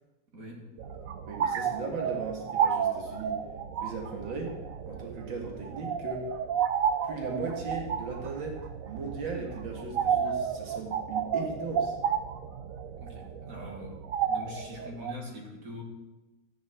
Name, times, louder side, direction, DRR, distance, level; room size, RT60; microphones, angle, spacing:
voice 1, 0.3-0.7 13.0-14.0 14.3-15.8, left 1 dB, 45° right, 0 dB, 2.7 m, -43 dB
sound 1, 0.8-15.1, right 8 dB, 65° right, 0.9 m, -32 dB
voice 2, 1.3-3.4 3.8-4.6 4.9-6.3 7.0-12.0, right 3 dB, 85° right, 0 dB, 2.7 m, -37 dB
13.5 x 10.5 x 4.5 m, 1.1 s
omnidirectional pair, 2.0 m